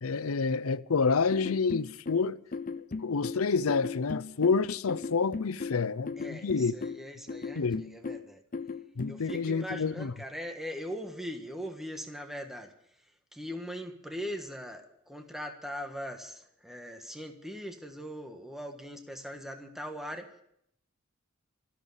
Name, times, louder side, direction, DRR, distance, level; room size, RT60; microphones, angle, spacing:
voice 1, 0.0-2.4 3.0-6.8 7.5-7.8 9.0-10.1, left 5 dB, 80° left, 0.6 m, -28 dB
sound 1, 1.3-9.5, left 4 dB, 40° left, 0.6 m, -38 dB
voice 2, 6.2-8.4 9.1-12.7 13.3-20.3, equal, ahead, 1.5 m, -40 dB
13.5 x 12.5 x 8.1 m
head